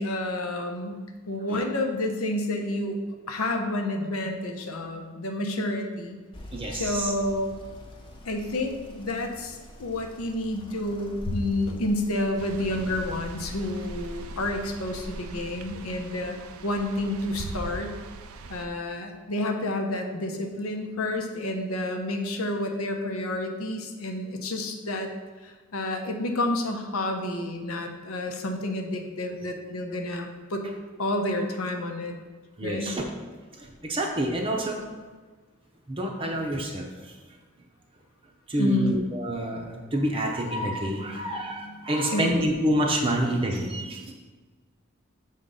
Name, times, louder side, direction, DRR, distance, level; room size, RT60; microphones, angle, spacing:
voice 1, 0.0-3.0 3.3-6.2 6.7-7.6 8.2-16.4 16.6-17.9 18.5-25.1 25.4-30.7 31.0-32.1 32.6-32.9 38.6-38.9 41.1-42.3, left 1 dB, 90° left, 4 dB, 0.9 m, -30 dB
sound 1, 6.3-15.6, equal, 25° left, 0.8 m, -43 dB
voice 2, 6.5-7.1 32.6-33.0 33.6-34.8 35.9-37.1 38.5-44.1, right 1 dB, 25° right, 0 dB, 0.6 m, -28 dB
sound 2, 12.4-18.7, right 3 dB, 85° right, 0.4 m, -41 dB
6.6 x 3.7 x 5.5 m, 1.4 s
head